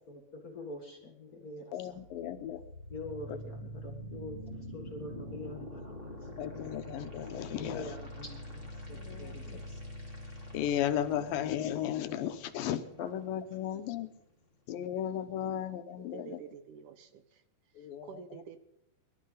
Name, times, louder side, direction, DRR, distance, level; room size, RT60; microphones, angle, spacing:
voice 1, 0.0-2.0 2.9-6.7 7.5-9.8 13.0-13.1, left 2 dB, 40° left, 2 dB, 1.3 m, -45 dB
voice 2, 1.7-2.6 3.3-3.4 6.4-7.9 8.9-9.4 10.5-14.1 14.7-16.4 17.8-18.1, left 10 dB, 80° left, 10 dB, 2.6 m, -35 dB
sound 1, 1.9-13.9, equal, 20° right, 2.1 m, -45 dB
voice 3, 16.0-17.4 17.8-18.6, right 8 dB, 75° right, 10 dB, 2.2 m, -49 dB
23.5 x 12.0 x 3.9 m, 0.76 s
omnidirectional pair, 4.1 m